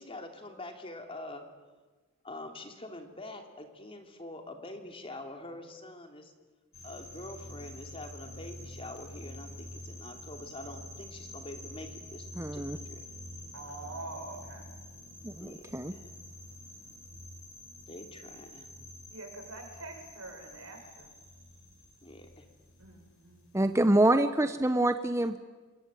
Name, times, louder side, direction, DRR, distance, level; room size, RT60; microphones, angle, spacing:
voice 1, 0.0-1.5 2.2-6.3 6.8-13.0 15.4-16.1 17.9-18.7 22.0-22.5, left 2 dB, 25° left, 5 dB, 3.0 m, -45 dB
sound 1, 6.7-24.1, left 1 dB, 90° left, 6.0 m, -47 dB
voice 2, 12.4-12.8 15.2-15.9 23.5-25.4, right 1 dB, 15° right, 9 dB, 0.8 m, -26 dB
voice 3, 13.5-14.7 19.1-21.1 22.8-23.5, right 2 dB, 85° right, 2 dB, 7.5 m, -45 dB
27.5 x 22.0 x 9.2 m, 1.3 s
head